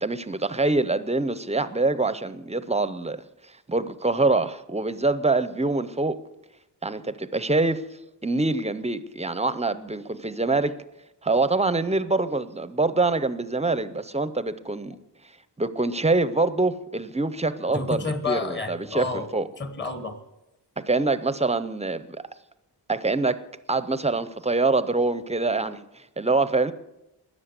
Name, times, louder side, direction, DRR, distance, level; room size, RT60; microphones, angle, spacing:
voice 1, 0.0-3.2 3.7-6.2 6.8-7.9 8.2-10.7 11.2-15.0 15.6-19.5 20.8-22.1 22.9-23.4 23.7-26.7, right 3 dB, 15° right, 0.6 m, -25 dB
voice 2, 17.7-19.3 19.6-20.2, left 3 dB, 25° left, 1.3 m, -30 dB
13.5 x 10.0 x 8.1 m
wide cardioid pair, 145°, 41 cm